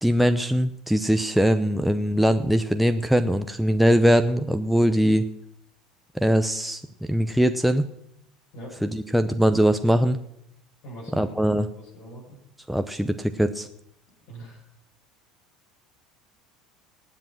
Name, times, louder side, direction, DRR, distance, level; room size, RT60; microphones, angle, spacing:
voice 1, 0.0-5.2 6.1-6.8 7.1-7.8 8.8-10.2 11.2-11.7 12.7-13.7, equal, ahead, 8 dB, 0.7 m, -21 dB
voice 2, 8.5-8.9 10.8-11.3 11.7-12.4 14.3-14.6, right 1 dB, 60° left, -7 dB, 6.6 m, -42 dB
18.5 x 7.7 x 5.9 m, 0.77 s
hypercardioid pair, 70°, 3 cm